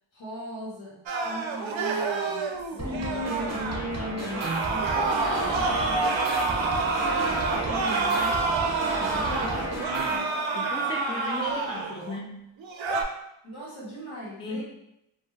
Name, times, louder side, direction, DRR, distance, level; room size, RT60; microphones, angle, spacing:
voice 1, 0.1-2.4 2.7-8.4 9.0-10.3 13.4-14.6, right 1 dB, 70° left, -7 dB, 1.3 m, -41 dB
sound 1, 1.1-3.8 4.3-12.2 12.6-13.0, right 3 dB, 70° right, 0.5 m, -28 dB
sound 2, 2.8-10.2, right 1 dB, 35° right, 0.8 m, -32 dB
voice 2, 9.0-9.5 10.5-12.4 14.4-14.6, left 2 dB, 10° left, 0 dB, 0.3 m, -36 dB
3.1 x 2.5 x 2.4 m, 0.82 s
wide cardioid pair, 80°, 48 cm